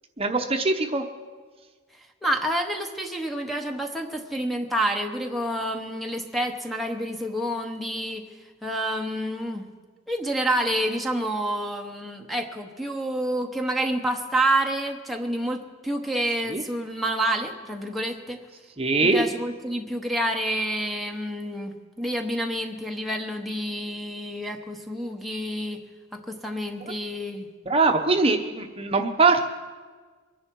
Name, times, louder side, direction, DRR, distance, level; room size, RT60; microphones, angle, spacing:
voice 1, 0.2-1.0 16.5-16.6 18.8-19.2 26.8-26.9 27.7-29.4, right 3 dB, 30° right, 6 dB, 0.9 m, -22 dB
voice 2, 2.2-8.3 8.6-9.7 10.1-18.4 19.0-25.8 26.1-27.5, right 1 dB, ahead, 4 dB, 0.9 m, -28 dB
23.5 x 10.5 x 4.6 m, 1.4 s
head